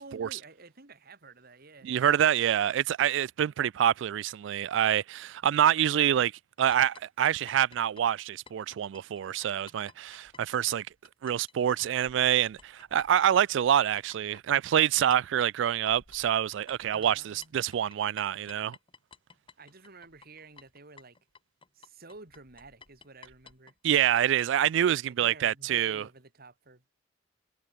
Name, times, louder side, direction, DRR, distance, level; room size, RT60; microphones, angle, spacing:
voice 1, 0.0-1.9 16.9-17.5 19.6-21.2 21.7-23.7 25.1-26.9, right 3 dB, 55° right, 3.0 m, -51 dB
voice 2, 1.8-6.3 6.6-10.9 11.2-18.8 23.8-26.0, right 10 dB, 70° right, 0.3 m, -26 dB
sound 1, 6.7-11.5 11.8-24.8, left 5 dB, 30° left, 1.6 m, -54 dB
head